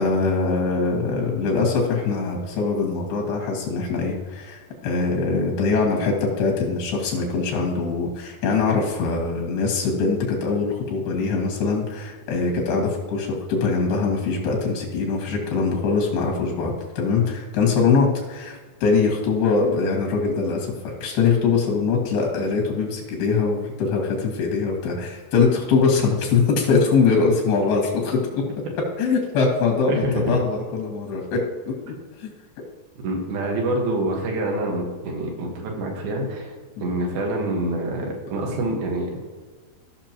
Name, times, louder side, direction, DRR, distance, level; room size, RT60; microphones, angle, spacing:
voice 1, 0.0-28.4 29.0-31.4 31.7-31.9 32.2-32.3 36.8-36.9, left 4 dB, 90° left, 0 dB, 3.9 m, -22 dB
voice 2, 33.0-36.5 36.8-39.2, right 1 dB, 75° right, 0 dB, 3.3 m, -26 dB
15.5 x 6.1 x 3.0 m, 1.4 s
omnidirectional pair, 4.4 m